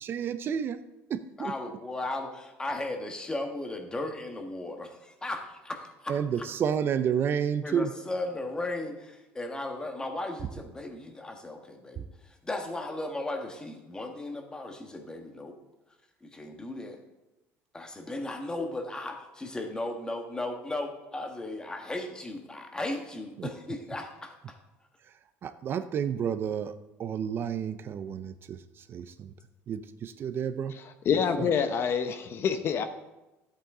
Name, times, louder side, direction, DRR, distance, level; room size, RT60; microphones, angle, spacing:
voice 1, 0.0-0.8 1.1-1.5 6.1-7.9 23.4-23.5 25.4-26.7 27.0-29.3 29.7-30.8 31.1-31.5, right 8 dB, 45° right, 11 dB, 0.5 m, -31 dB
voice 2, 1.4-6.2 7.6-15.5 16.2-17.0 17.7-24.6, left 2 dB, 15° left, 5 dB, 1.5 m, -36 dB
voice 3, 31.0-32.8, left 7 dB, 45° left, 9 dB, 0.8 m, -26 dB
13.0 x 8.4 x 3.8 m, 1.0 s
cardioid pair, 125°, 6 cm